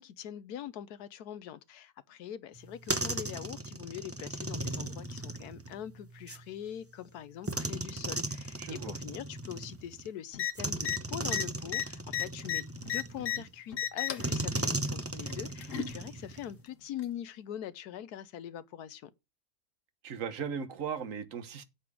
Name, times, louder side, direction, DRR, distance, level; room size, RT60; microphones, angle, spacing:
voice 1, 0.0-19.1, left 10 dB, 75° left, 1.3 m, -43 dB
sound 1, 2.6-6.4 7.4-10.1 10.6-13.5 14.2-16.6, right 2 dB, 20° right, 0.4 m, -37 dB
voice 2, 8.6-9.0 13.3-13.4 20.0-21.6, right 7 dB, 55° right, 1.5 m, -37 dB
sound 2, 10.3-10.5 10.8-11.0 11.3-13.4 13.7-14.3 15.3-15.9 17.0-17.1, left 10 dB, 55° left, 1.3 m, -33 dB
8.6 x 7.9 x 4.8 m
omnidirectional pair, 1.7 m